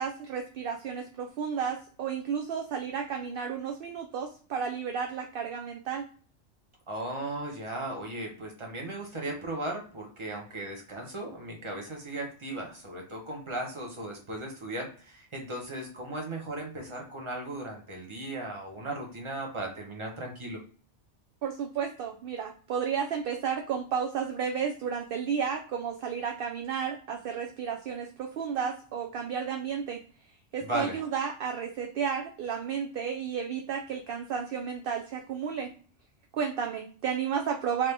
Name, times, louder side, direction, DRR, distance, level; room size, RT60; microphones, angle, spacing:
voice 1, 0.0-6.1 21.4-30.0 30.5-35.7 36.3-37.9, right 7 dB, 60° right, 3 dB, 0.6 m, -32 dB
voice 2, 6.9-20.6 30.6-31.0, right 1 dB, 25° right, 0 dB, 1.0 m, -36 dB
3.6 x 3.0 x 3.4 m, 0.42 s
omnidirectional pair, 1.2 m